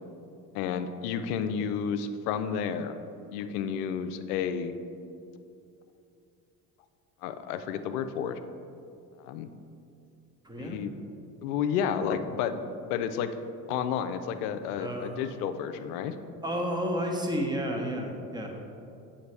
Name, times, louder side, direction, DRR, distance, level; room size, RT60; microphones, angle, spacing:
voice 1, 0.5-3.0 3.3-4.7 7.2-8.4 9.2-9.5 10.6-10.9 11.4-12.6 12.9-13.3 13.7-16.1, left 7 dB, 70° left, 10 dB, 0.6 m, -31 dB
voice 2, 10.4-10.8 14.8-15.3 16.4-18.5, equal, 10° right, 1 dB, 1.1 m, -31 dB
8.0 x 5.6 x 3.3 m, 2.6 s
hypercardioid pair, 60°, 47 cm